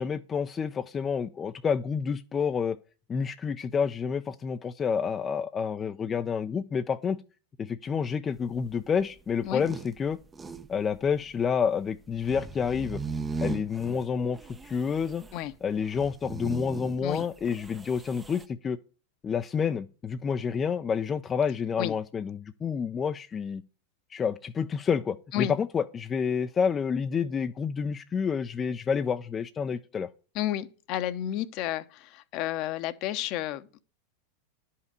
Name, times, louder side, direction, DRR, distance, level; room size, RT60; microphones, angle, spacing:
voice 1, 0.0-2.8 3.1-7.2 7.6-10.2 10.7-13.0 13.4-15.2 15.6-18.8 19.2-23.6 24.1-30.1, left 6 dB, 25° left, 0.5 m, -29 dB
sound 1, 8.3-18.5, right 4 dB, 15° right, 0.7 m, -39 dB
voice 2, 30.3-33.8, left 13 dB, 50° left, 0.9 m, -31 dB
11.0 x 5.7 x 6.8 m
hypercardioid pair, 95°, 0 cm